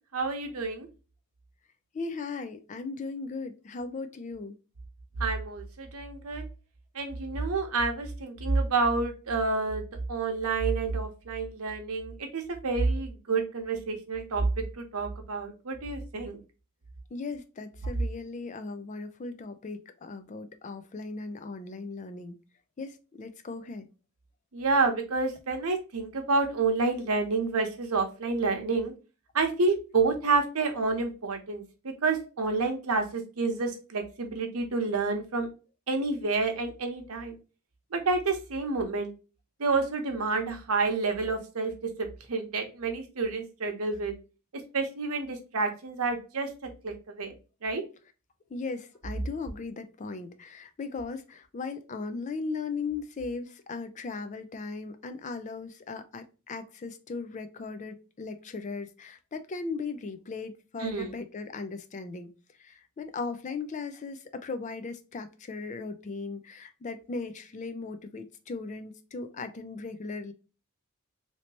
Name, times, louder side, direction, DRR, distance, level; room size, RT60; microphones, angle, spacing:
voice 1, 0.1-0.9 5.2-6.4 6.9-9.8 10.1-16.4 24.5-28.9 29.3-31.6 32.0-35.5 35.9-37.4 37.9-39.1 39.6-41.7 42.3-44.1 44.7-46.5 46.8-47.3 47.6-47.8 60.8-61.1, right 3 dB, 80° right, 0.8 m, -29 dB
voice 2, 1.9-4.5 17.1-22.4 22.8-23.9 48.5-62.3 62.6-70.3, left 4 dB, 35° left, 0.4 m, -37 dB
3.2 x 2.8 x 2.8 m
head